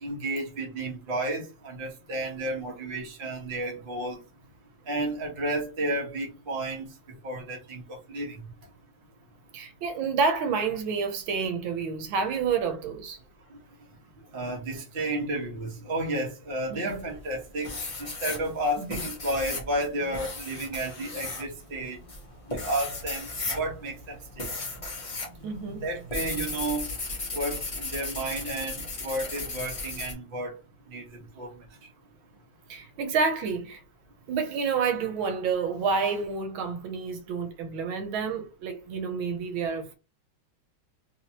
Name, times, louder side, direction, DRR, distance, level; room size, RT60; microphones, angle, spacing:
voice 1, 0.0-4.2 4.9-6.9 7.2-7.8 8.1-8.4 14.3-17.8 18.2-22.0 22.5-24.2 25.8-26.9 27.3-30.5 30.9-31.5, right 1 dB, 30° right, 1.1 m, -32 dB
voice 2, 9.5-13.2 16.7-17.0 18.8-19.0 25.4-25.9 32.7-33.8 34.3-39.9, right 5 dB, 80° right, 1.5 m, -29 dB
sound 1, 16.9-17.3 17.6-25.3 25.6-30.1, left 2 dB, 50° left, 0.4 m, -35 dB
3.5 x 2.9 x 2.8 m
omnidirectional pair, 2.2 m